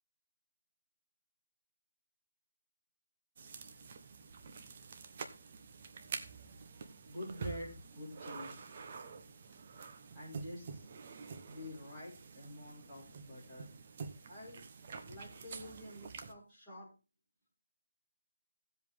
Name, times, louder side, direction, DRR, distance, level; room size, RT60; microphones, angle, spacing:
sound 1, 3.4-16.3, right 5 dB, 25° right, 1.0 m, -48 dB
voice 1, 7.0-8.7 10.1-10.9 11.4-13.7 14.3-14.6 15.0-16.9, left 1 dB, ahead, -14 dB, 6.5 m, -48 dB
16.0 x 7.9 x 3.6 m, 0.31 s
hypercardioid pair, 175°, 0 cm